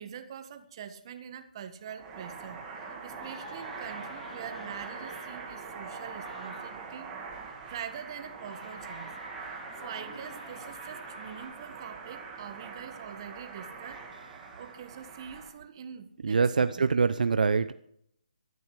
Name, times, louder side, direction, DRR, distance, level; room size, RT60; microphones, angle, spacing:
voice 1, 0.0-7.1 7.4-9.1 9.5-14.0 14.6-16.8, right 8 dB, 35° right, 9 dB, 1.6 m, -44 dB
sound 1, 1.8-15.5, right 5 dB, 15° right, 2.5 m, -43 dB
sound 2, 2.8-7.0 8.3-11.4, equal, 10° left, 7.2 m, -48 dB
voice 2, 16.2-17.7, right 5 dB, 70° right, 12 dB, 0.8 m, -24 dB
13.5 x 13.0 x 4.9 m, 0.68 s
hypercardioid pair, 160°, 5 cm